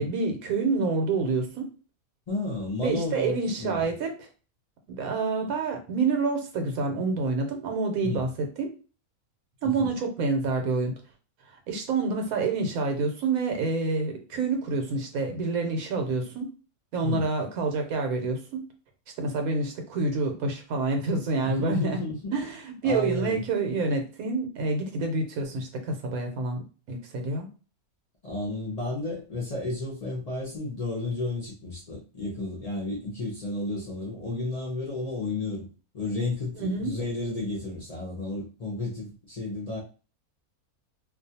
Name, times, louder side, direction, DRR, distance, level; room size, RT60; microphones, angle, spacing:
voice 1, 0.0-1.7 2.8-4.3 4.9-8.7 9.6-11.0 11.7-16.5 16.9-18.6 19.2-22.0 22.3-26.6 26.9-27.5 36.6-36.9, right 3 dB, 80° right, 1.1 m, -27 dB
voice 2, 2.3-3.8 8.0-8.2 9.6-9.9 17.0-17.3 21.4-22.4 22.8-23.4 28.2-35.7 35.9-39.8, left 2 dB, 50° left, 0.4 m, -32 dB
2.5 x 2.3 x 2.7 m
omnidirectional pair, 1.5 m